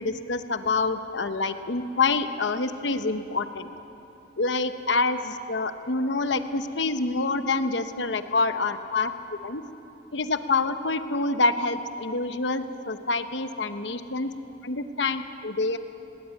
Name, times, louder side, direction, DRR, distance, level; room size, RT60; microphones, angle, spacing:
voice 1, 0.0-3.7 4.4-9.1 9.4-9.6 10.1-14.3 14.6-15.8, left 3 dB, 70° left, 9 dB, 1.0 m, -27 dB
19.0 x 18.0 x 9.1 m, 2.9 s
head